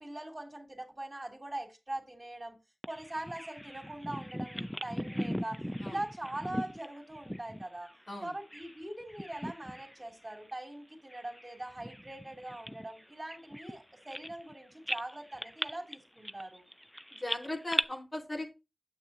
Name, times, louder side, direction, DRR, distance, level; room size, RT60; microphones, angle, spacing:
voice 1, 0.0-2.6 2.8-7.9 8.2-16.7, right 1 dB, 30° right, 2.6 m, -42 dB
Bird vocalization bird call bird song, 2.8-8.8 9.1-10.0 10.3-10.5 11.1-14.5 14.9-17.8, equal, 5° left, 0.5 m, -39 dB
voice 2, 17.1-18.5, left 1 dB, 45° left, 4.0 m, -38 dB
9.0 x 8.0 x 2.7 m
wide cardioid pair, 50°, 0 cm